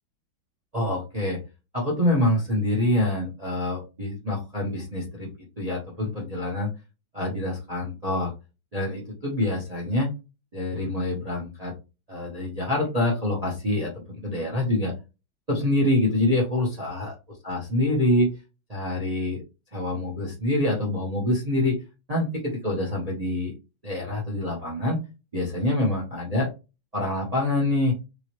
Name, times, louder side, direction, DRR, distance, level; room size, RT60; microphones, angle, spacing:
voice 1, 0.7-1.4 1.7-5.3 5.6-6.7 7.1-8.3 8.7-10.1 10.5-11.7 12.1-14.9 15.5-17.1 17.4-18.3 18.7-19.4 19.7-21.7 22.1-23.5 23.8-25.0 25.3-26.5 26.9-27.9, left 1 dB, 30° right, -2 dB, 0.7 m, -26 dB
3.5 x 3.0 x 3.0 m, 0.29 s
omnidirectional pair, 2.2 m